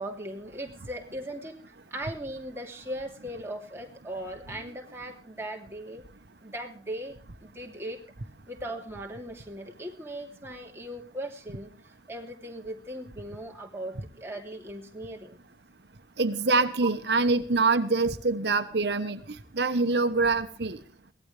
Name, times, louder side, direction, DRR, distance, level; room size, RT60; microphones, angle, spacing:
voice 1, 0.0-1.6 1.9-6.0 6.4-8.0 8.5-11.7 12.1-15.4 16.8-16.9, right 1 dB, 15° right, 1 dB, 2.9 m, -38 dB
voice 2, 16.2-19.2 19.5-20.8, right 3 dB, 65° right, 9 dB, 1.1 m, -25 dB
22.5 x 17.5 x 3.3 m, 0.38 s
head